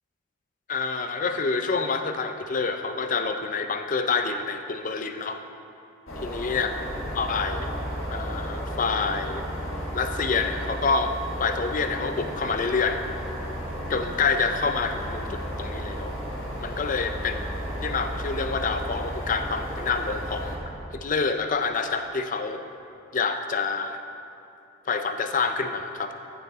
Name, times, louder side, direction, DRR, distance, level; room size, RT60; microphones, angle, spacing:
voice 1, 0.7-5.4 6.2-6.7 7.1-7.7 8.1-9.4 9.9-11.1 11.4-13.0 13.9-16.1 16.6-20.6 20.9-22.6 23.1-24.0 24.9-26.1, left 4 dB, 40° left, 7 dB, 0.5 m, -27 dB
sound 1, 6.1-20.6, equal, 75° left, 1.6 m, -33 dB
14.5 x 6.9 x 3.6 m, 2.7 s
head